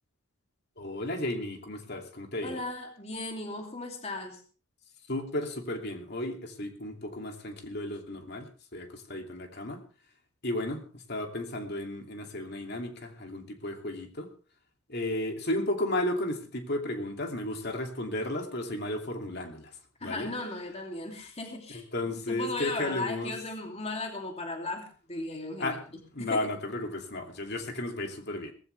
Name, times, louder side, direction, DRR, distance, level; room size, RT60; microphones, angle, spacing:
voice 1, 0.8-2.6 5.1-9.8 10.4-14.3 14.9-19.7 20.0-20.3 21.7-23.3 25.6-25.8 26.1-28.5, left 1 dB, 50° left, 4 dB, 2.7 m, -34 dB
voice 2, 2.4-4.4 20.0-21.8 22.3-25.8 26.2-26.5, left 2 dB, 30° left, 3 dB, 2.7 m, -36 dB
19.0 x 15.0 x 3.3 m, 0.37 s
head